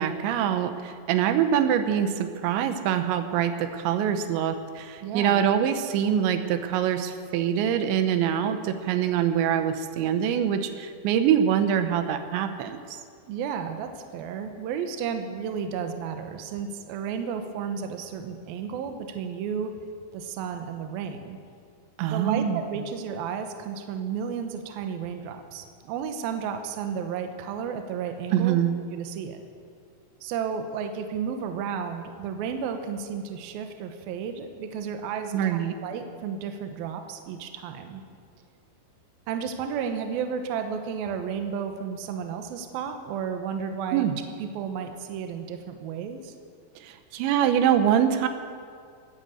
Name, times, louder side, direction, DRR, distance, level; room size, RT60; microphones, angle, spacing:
voice 1, 0.0-12.8 22.0-22.6 28.3-28.8 35.3-35.7 43.9-44.1 46.8-48.3, right 9 dB, 90° right, 8 dB, 3.3 m, -24 dB
voice 2, 5.0-5.5 13.3-19.7 20.1-21.4 22.1-28.6 28.9-29.4 30.2-38.0 39.3-44.1 44.4-46.3, right 7 dB, 70° right, 6 dB, 2.6 m, -32 dB
19.5 x 9.4 x 7.8 m, 2.2 s
omnidirectional pair, 5.1 m